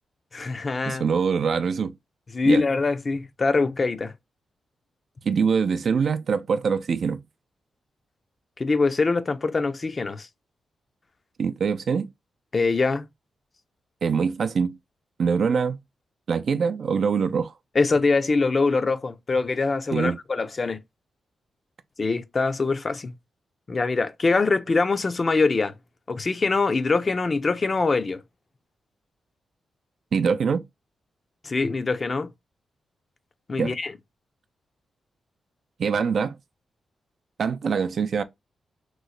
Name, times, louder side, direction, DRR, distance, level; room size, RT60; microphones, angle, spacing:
voice 1, 0.3-1.0 2.3-4.1 8.6-10.3 12.5-13.1 17.7-20.8 22.0-23.1 23.7-25.7 26.1-28.2 31.4-32.3 33.5-33.9, left 3 dB, 40° left, 0.5 m, -23 dB
voice 2, 0.8-1.9 2.5-2.6 5.2-7.2 11.4-12.1 14.0-14.8 15.2-15.8 16.3-17.5 19.9-20.2 30.1-30.6 33.6-33.7 35.8-36.4 37.4-38.2, right 6 dB, 65° right, 0.4 m, -24 dB
3.0 x 2.0 x 3.8 m
cardioid pair, 65°, 0 cm